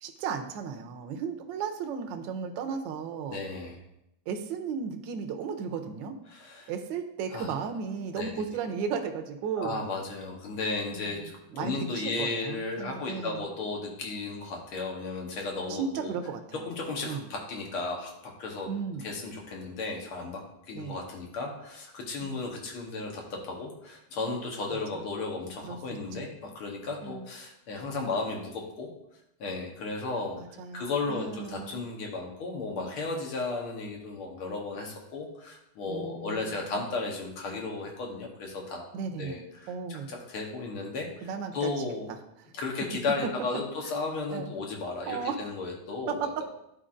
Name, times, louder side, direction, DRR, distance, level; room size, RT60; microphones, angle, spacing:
voice 1, 0.0-3.4 4.3-6.2 6.7-9.8 10.9-13.5 15.7-16.7 17.1-17.3 18.7-19.1 20.7-21.0 22.2-22.4 24.7-25.0 25.6-25.8 26.1-26.3 27.0-27.3 30.3-31.8 35.9-36.8 38.9-39.4 39.7-40.2 41.2-41.8 42.4-42.5 44.3-44.5 45.1-45.4 46.1-46.3, right 6 dB, 70° right, 5 dB, 1.3 m, -35 dB
voice 2, 3.3-3.8 6.3-6.7 7.3-7.5 8.2-8.3 9.6-11.2 11.6-16.1 16.7-18.7 19.0-20.4 20.7-28.9 29.4-30.4 30.7-38.9 39.2-41.3 41.5-42.1 42.6-46.4, left 3 dB, 85° left, 0 dB, 2.1 m, -34 dB
11.0 x 4.4 x 2.5 m, 0.82 s
omnidirectional pair, 2.3 m